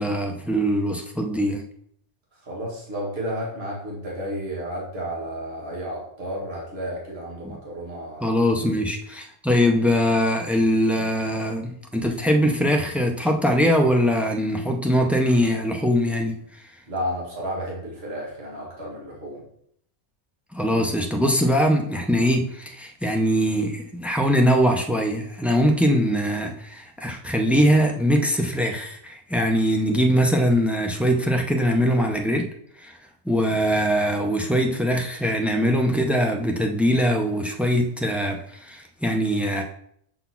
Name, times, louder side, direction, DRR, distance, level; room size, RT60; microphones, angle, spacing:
voice 1, 0.0-1.6 7.4-7.5 8.2-16.4 20.5-32.5 32.8-32.9 33.2-39.6, equal, ahead, 3 dB, 0.4 m, -22 dB
voice 2, 2.4-8.3 8.8-8.9 16.9-19.4, equal, 50° right, -4 dB, 2.0 m, -32 dB
5.4 x 4.1 x 5.8 m, 0.68 s
omnidirectional pair, 1.3 m